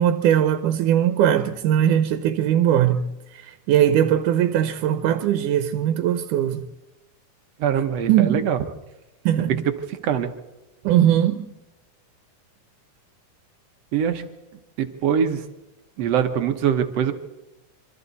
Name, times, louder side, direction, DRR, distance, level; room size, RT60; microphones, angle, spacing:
voice 1, 0.0-3.0 3.3-6.7 7.7-8.5 9.3-9.7 10.8-11.5, right 10 dB, 90° right, 2.4 m, -20 dB
voice 2, 7.6-8.6 9.4-9.5 10.0-10.3 13.9-14.2 14.8-15.4 16.0-17.1, right 8 dB, 65° right, 1.9 m, -22 dB
26.5 x 24.0 x 4.0 m
omnidirectional pair, 3.5 m